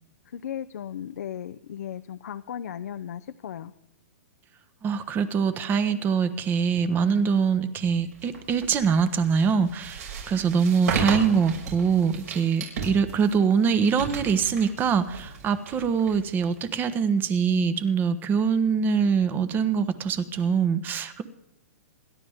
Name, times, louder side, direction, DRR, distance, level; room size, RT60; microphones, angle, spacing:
voice 1, 0.3-3.7, left 9 dB, 75° left, 8 dB, 0.7 m, -36 dB
voice 2, 4.8-21.2, right 6 dB, 20° right, 12 dB, 1.2 m, -24 dB
sound 1, 8.1-16.8, right 4 dB, 70° right, 6.0 m, -35 dB
27.0 x 12.0 x 3.6 m, 0.84 s
hypercardioid pair, 145°, 9 cm